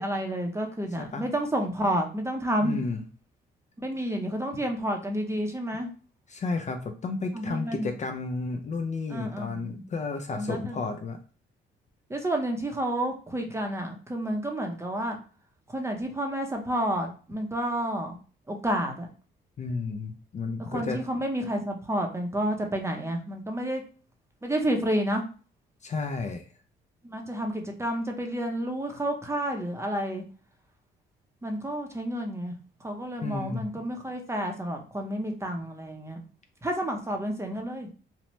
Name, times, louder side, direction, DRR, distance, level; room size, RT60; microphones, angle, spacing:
voice 1, 0.0-2.8 3.8-5.9 7.3-7.9 9.1-9.8 10.3-10.8 12.1-15.2 15.7-18.2 18.5-19.1 20.6-23.8 24.4-25.2 27.0-30.2 31.4-32.5 32.8-36.2 36.6-37.9, right 1 dB, 15° right, 2 dB, 0.6 m, -30 dB
voice 2, 1.0-1.3 2.6-3.0 6.3-11.2 19.6-21.0 25.8-26.4 33.2-33.7, left 4 dB, 35° left, 5 dB, 0.4 m, -32 dB
2.8 x 2.1 x 3.0 m, 0.38 s
cardioid pair, 90°, 20 cm